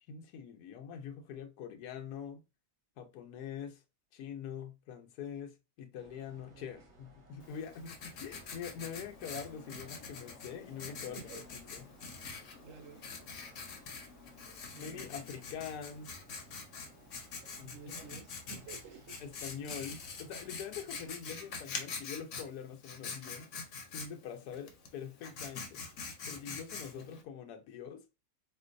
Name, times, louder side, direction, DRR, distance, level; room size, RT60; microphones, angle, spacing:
voice 1, 0.1-2.4 3.0-3.8 4.1-11.8 12.3-12.5 14.8-16.1 17.6-17.8 19.2-23.5 23.9-25.9 26.3-28.0, left 7 dB, 85° left, 1.2 m, -44 dB
sound 1, 5.9-21.1, right 2 dB, 85° right, 1.8 m, -61 dB
Writing, 7.4-27.2, left 4 dB, 60° left, 1.0 m, -45 dB
voice 2, 12.6-13.0 14.7-15.1 17.6-19.2 26.9-27.2, right 5 dB, 65° right, 0.9 m, -51 dB
4.4 x 2.5 x 2.5 m
omnidirectional pair, 1.6 m